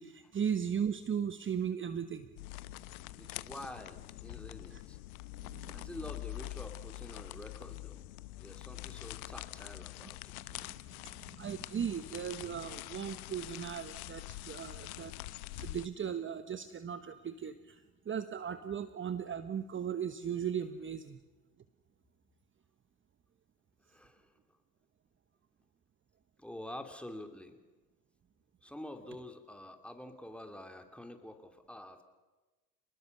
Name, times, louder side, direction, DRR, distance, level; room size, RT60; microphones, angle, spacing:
voice 1, 0.0-2.3 4.7-4.8 5.5-5.9 11.2-15.1 15.5-17.8 18.1-21.2, right 8 dB, 25° right, 11 dB, 1.2 m, -37 dB
sound 1, 2.4-15.9, left 18 dB, 70° left, 1.0 m, -45 dB
voice 2, 3.2-5.0 5.7-8.1 8.4-10.5 23.9-24.3 26.4-27.6 28.6-32.0, left 1 dB, 5° left, 6 dB, 3.2 m, -47 dB
29.0 x 20.0 x 6.9 m, 1.2 s
hypercardioid pair, 75°, 44 cm